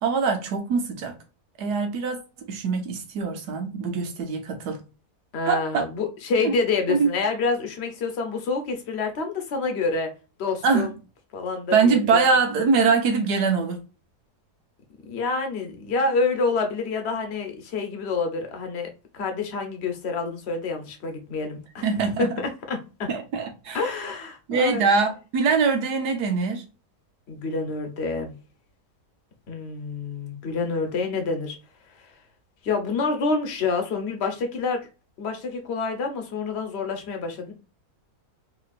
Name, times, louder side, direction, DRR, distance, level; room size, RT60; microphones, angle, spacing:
voice 1, 0.0-1.1 1.6-2.2 2.5-4.8 5.4-5.8 6.4-6.5 6.9-7.1 10.6-10.9 11.7-13.8 21.8-22.3 23.1-23.8 24.5-26.6, right 5 dB, 85° right, 1.5 m, -23 dB
voice 2, 5.3-10.1 10.4-10.9 11.3-12.2 15.1-18.9 19.1-21.9 22.2-22.3 22.7-23.1 23.7-24.9 27.3-28.3 29.5-31.5 31.9-32.1 32.6-34.9 35.2-37.5, left 4 dB, 50° left, 1.1 m, -27 dB
4.1 x 2.9 x 2.4 m
omnidirectional pair, 1.7 m